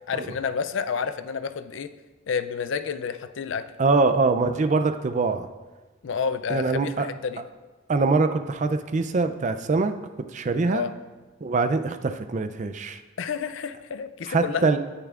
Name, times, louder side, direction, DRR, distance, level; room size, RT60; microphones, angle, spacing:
voice 1, 0.1-1.9 2.3-3.6 6.0-7.4 10.7-10.9 13.2-14.7, left 6 dB, 70° left, 12 dB, 0.4 m, -29 dB
voice 2, 3.8-5.5 6.5-7.1 7.9-9.9 10.3-10.9 11.4-13.0 14.3-14.8, right 3 dB, 35° right, 9 dB, 0.4 m, -23 dB
17.0 x 6.8 x 2.4 m, 1.3 s
head